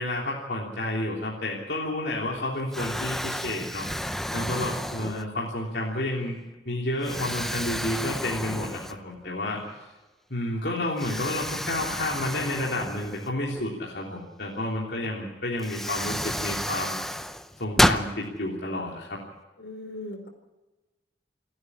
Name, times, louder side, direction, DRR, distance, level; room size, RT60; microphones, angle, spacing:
voice 1, 0.0-3.9 4.3-6.4 6.6-9.6 10.3-17.0 17.6-19.2, left 1 dB, 70° left, -3 dB, 3.3 m, -30 dB
Explosion, 2.0-2.4 2.7-5.5 6.1-6.3 7.0-9.3 9.6-9.7 11.0-13.6 15.0-15.1 15.6-18.1, equal, ahead, 0.7 m, -30 dB
voice 2, 19.6-20.3, left 1 dB, 85° left, 5 dB, 4.4 m, -38 dB
28.5 x 9.6 x 9.8 m, 1.1 s
head